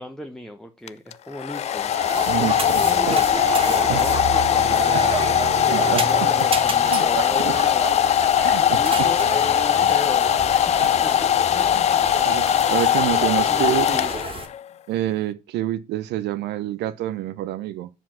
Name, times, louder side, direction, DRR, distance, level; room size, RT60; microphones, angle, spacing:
voice 1, 0.0-1.9 2.3-3.3 3.6-8.0 8.7-10.3 11.0-12.4 13.0-13.1 13.4-14.1, left 1 dB, ahead, 0.9 m, -36 dB
Domestic sounds home sounds, 0.9-14.6, left 10 dB, 30° left, 0.4 m, -20 dB
sound 1, 1.5-14.5, right 4 dB, 25° right, 2.0 m, -30 dB
voice 2, 2.3-3.2 3.9-4.0 4.9-5.0 5.7-6.5 6.9-7.5 8.4-9.1 9.8-9.9 11.7-11.8 12.2-14.0 14.9-17.9, right 13 dB, 55° right, 0.7 m, -28 dB
7.2 x 5.0 x 5.7 m
hypercardioid pair, 65°, 21 cm